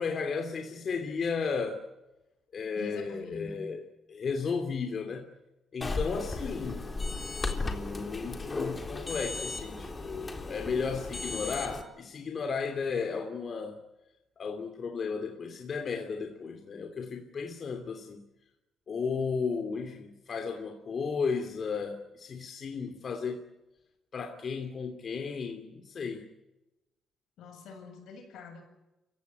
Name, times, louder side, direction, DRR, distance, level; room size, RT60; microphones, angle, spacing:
voice 1, 0.0-1.8 2.5-3.8 4.1-5.2 5.7-6.8 7.5-13.8 14.4-18.2 18.9-23.4 24.1-26.2, left 5 dB, 50° left, 5 dB, 2.9 m, -34 dB
voice 2, 2.8-3.8 27.4-28.6, left 3 dB, 80° left, 5 dB, 7.8 m, -45 dB
sound 1, 5.8-11.8, left 3 dB, 25° left, 3.8 m, -35 dB
29.0 x 16.5 x 9.6 m, 0.97 s
cardioid pair, 90°, 0 cm